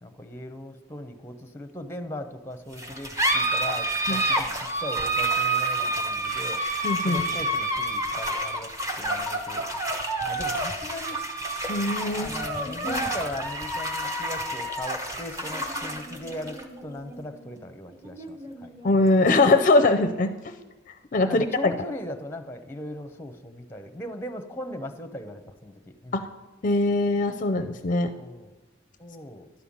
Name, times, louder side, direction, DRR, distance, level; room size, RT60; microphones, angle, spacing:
voice 1, 0.0-6.6 7.0-9.7 10.2-11.2 12.1-18.7 21.2-26.3 28.2-28.5 29.0-29.5, left 1 dB, 10° left, 7 dB, 0.8 m, -38 dB
sound 1, 2.7-19.7, right 1 dB, 15° right, 1.1 m, -29 dB
voice 2, 6.8-7.2 11.7-12.3 12.7-13.0 18.8-20.3 21.1-21.7 26.1-26.2 26.6-28.1, left 2 dB, 40° left, 8 dB, 0.5 m, -22 dB
11.5 x 5.6 x 8.6 m, 1.2 s
head